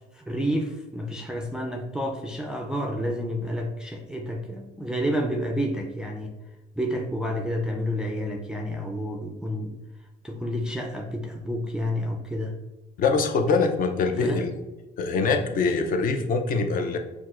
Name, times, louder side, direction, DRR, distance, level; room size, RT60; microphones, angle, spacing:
voice 1, 0.1-6.3 6.8-9.7 10.2-12.5 14.2-14.4, equal, 5° right, 0 dB, 0.4 m, -29 dB
voice 2, 13.0-14.5 15.0-17.0, left 4 dB, 55° left, 5 dB, 0.5 m, -23 dB
6.0 x 2.2 x 2.4 m, 1.1 s
cardioid pair, 110°, 17 cm